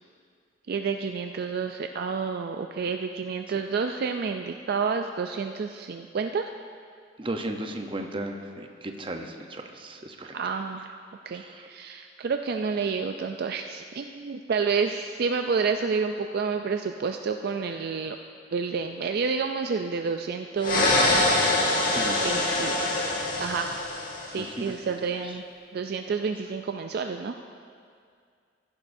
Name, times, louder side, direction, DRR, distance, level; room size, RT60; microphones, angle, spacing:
voice 1, 0.7-6.5 10.3-10.9 11.3-18.2 18.5-21.4 22.2-22.7 23.4-23.7 24.3-25.4 25.7-27.4, right 5 dB, 55° right, 6 dB, 0.4 m, -29 dB
voice 2, 7.2-10.3 11.3-11.7 21.9-22.3 24.3-24.7, right 1 dB, 30° right, 4 dB, 0.7 m, -35 dB
sound 1, 20.6-24.5, left 2 dB, 45° left, 1.4 m, -24 dB
15.5 x 11.0 x 2.6 m, 2.2 s
head